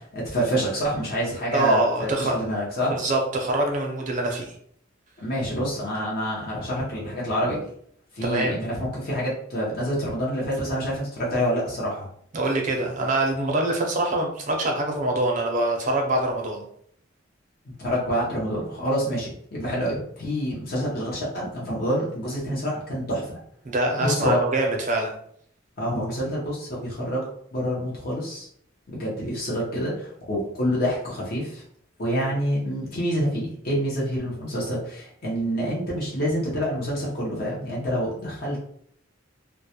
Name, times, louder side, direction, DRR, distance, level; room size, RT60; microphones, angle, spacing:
voice 1, 0.0-3.0 5.2-7.7 8.1-12.1 17.7-23.4 24.0-24.4 25.8-28.5 28.9-31.6 32.0-38.6, equal, 45° left, -5 dB, 0.6 m, -27 dB
voice 2, 1.5-2.4 2.8-4.5 8.2-8.6 12.3-16.6 22.5-22.6 23.6-25.1, right 2 dB, 40° right, 1 dB, 0.5 m, -24 dB
2.2 x 2.0 x 2.7 m, 0.65 s
head